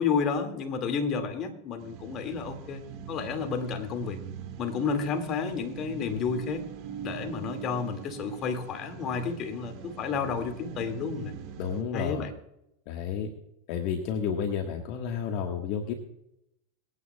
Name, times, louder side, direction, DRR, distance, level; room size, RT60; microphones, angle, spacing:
voice 1, 0.0-2.8 3.1-4.2 4.6-6.6 7.0-11.3 11.9-12.3, left 5 dB, 40° left, 5 dB, 2.2 m, -31 dB
sound 1, 1.8-11.8, right 8 dB, 55° right, 2.4 m, -42 dB
voice 2, 11.6-12.3 12.9-13.3 13.7-15.9, left 7 dB, 60° left, 3 dB, 1.5 m, -31 dB
25.5 x 9.5 x 2.3 m, 0.82 s
hypercardioid pair, 110°, 0 cm